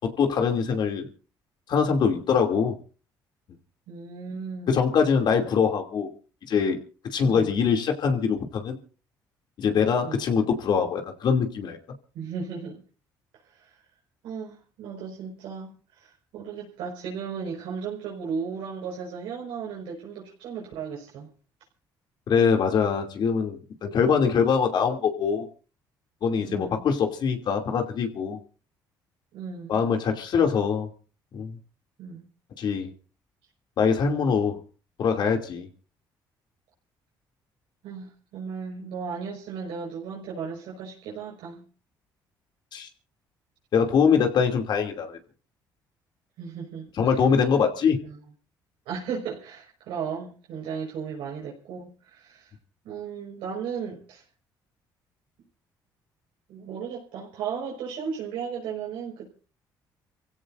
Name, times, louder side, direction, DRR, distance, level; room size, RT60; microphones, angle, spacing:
voice 1, 0.0-1.1 1.7-2.8 4.7-6.1 6.5-6.8 7.0-8.8 9.6-11.8 22.3-25.5 26.2-28.4 29.7-30.9 31.3-31.6 32.6-32.9 33.8-34.6 35.0-35.7 42.7-42.9 43.7-45.2 47.0-48.0, left 6 dB, 60° left, 4 dB, 2.7 m, -23 dB
voice 2, 3.9-4.8 7.3-7.5 10.0-10.2 12.1-12.8 13.4-13.9 14.2-21.3 26.4-26.8 29.3-29.8 32.0-32.2 37.8-41.6 46.4-46.9 47.9-48.2 48.9-52.5 52.8-54.2 56.5-59.3, right 6 dB, 90° right, -3 dB, 5.2 m, -35 dB
29.5 x 16.5 x 2.6 m, 0.37 s
cardioid pair, 90°, 8 cm